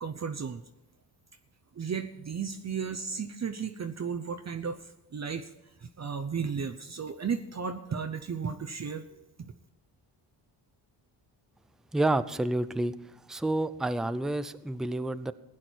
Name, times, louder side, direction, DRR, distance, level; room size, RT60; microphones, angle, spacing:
voice 1, 0.0-0.6 1.8-5.5 5.8-9.1, right 6 dB, 35° right, 7 dB, 0.8 m, -34 dB
voice 2, 11.9-12.9 13.3-15.3, right 2 dB, ahead, 12 dB, 0.4 m, -29 dB
16.5 x 10.0 x 4.5 m, 0.99 s
cardioid pair, 110°, 47 cm